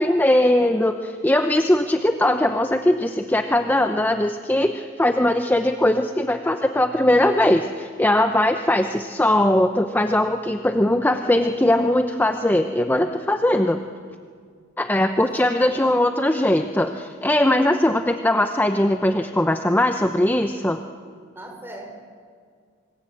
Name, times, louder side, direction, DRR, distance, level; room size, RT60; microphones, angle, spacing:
voice 1, 0.0-13.8 14.8-20.8, left 1 dB, 10° left, 7 dB, 0.8 m, -20 dB
voice 2, 15.2-16.0 21.4-21.9, right 1 dB, 10° right, 3 dB, 4.3 m, -39 dB
26.0 x 21.5 x 8.7 m, 2.1 s
head